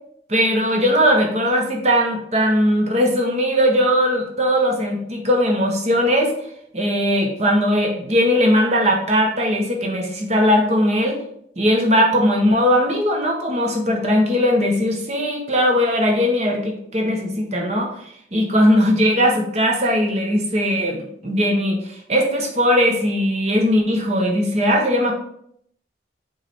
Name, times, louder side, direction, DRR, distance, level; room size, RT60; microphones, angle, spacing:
voice 1, 0.3-6.3 6.7-11.2 11.6-17.9 18.3-25.1, equal, 35° right, 2 dB, 1.1 m, -19 dB
7.1 x 4.1 x 3.5 m, 0.69 s
head